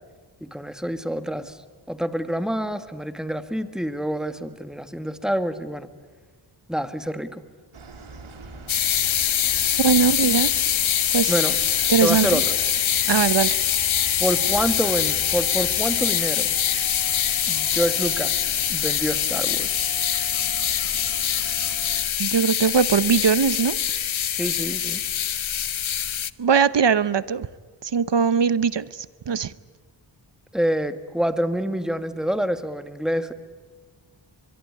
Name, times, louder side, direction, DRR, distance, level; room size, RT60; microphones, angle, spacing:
voice 1, 0.4-1.6 1.9-5.9 6.7-7.4 11.3-11.5 12.0-12.6 14.2-16.5 17.5-19.7 24.3-25.0 30.5-33.3, equal, ahead, 1.8 m, -27 dB
sound 1, 7.7-22.1, right 3 dB, 80° right, 2.8 m, -41 dB
sound 2, 8.7-26.3, left 10 dB, 75° left, 0.9 m, -24 dB
voice 2, 9.8-10.5 11.1-11.3 11.9-12.4 13.1-13.6 22.2-23.8 26.4-27.5 27.8-29.5, right 6 dB, 60° right, 0.9 m, -20 dB
24.5 x 22.5 x 9.8 m
wide cardioid pair, 65°, 48 cm